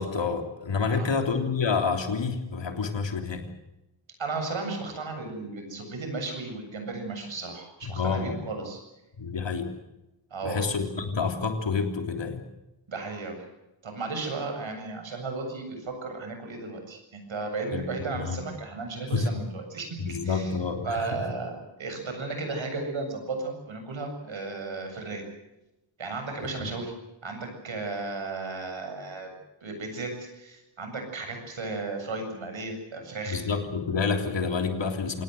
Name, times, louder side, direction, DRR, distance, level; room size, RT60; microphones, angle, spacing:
voice 1, 0.0-3.5 7.8-8.4 9.2-9.7 10.4-12.4 17.7-17.8 18.1-18.4 19.1-19.4 20.0-21.0 26.6-26.7 33.3-35.2, left 5 dB, 60° left, 5 dB, 3.5 m, -28 dB
voice 2, 4.2-8.8 10.3-10.6 12.9-13.4 13.8-20.5 20.9-25.2 26.0-26.9 27.2-29.3 29.6-33.4, right 3 dB, 70° right, 5 dB, 7.6 m, -34 dB
26.5 x 19.0 x 7.9 m, 0.94 s
wide cardioid pair, 95°, 48 cm